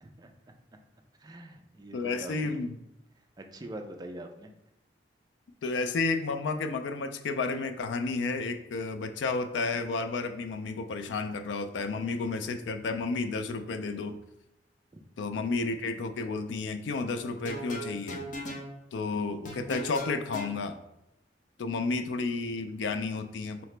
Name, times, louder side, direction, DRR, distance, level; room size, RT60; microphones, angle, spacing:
voice 1, 0.0-0.3 1.2-2.6 3.4-4.5 14.9-15.0, right 1 dB, 20° right, 4 dB, 0.4 m, -44 dB
voice 2, 1.9-2.8 5.6-14.2 15.2-18.3 18.9-20.8 21.6-23.6, left 3 dB, 85° left, 8 dB, 0.3 m, -31 dB
sound 1, 17.3-18.7 19.5-20.5, equal, 45° left, 0.6 m, -38 dB
4.0 x 2.8 x 3.2 m, 0.84 s
head